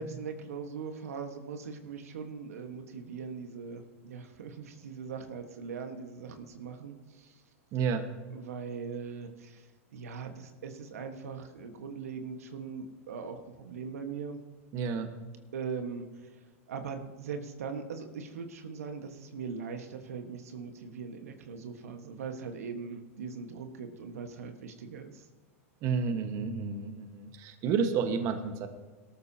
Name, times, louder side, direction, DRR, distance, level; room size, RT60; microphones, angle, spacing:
voice 1, 0.0-7.4 8.3-14.4 15.5-16.4 16.7-25.3, right 5 dB, 80° right, 5 dB, 1.5 m, -40 dB
voice 2, 7.7-8.1 14.7-15.1 25.8-28.7, right 6 dB, 45° right, 6 dB, 1.5 m, -30 dB
19.0 x 13.0 x 2.9 m, 1.3 s
hypercardioid pair, 110°, 8 cm